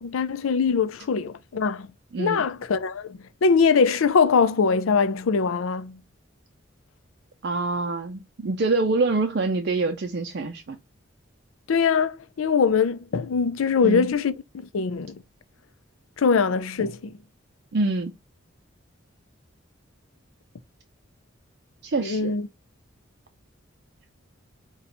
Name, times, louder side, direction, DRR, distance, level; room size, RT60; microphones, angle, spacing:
voice 1, 0.0-1.9 2.2-6.0 11.7-15.2 16.2-17.1 22.0-22.5, left 5 dB, 85° left, 0.5 m, -22 dB
voice 2, 7.4-10.8 13.8-14.1 17.7-18.1 21.8-22.3, right 3 dB, 55° right, 0.4 m, -25 dB
4.2 x 2.3 x 3.9 m
head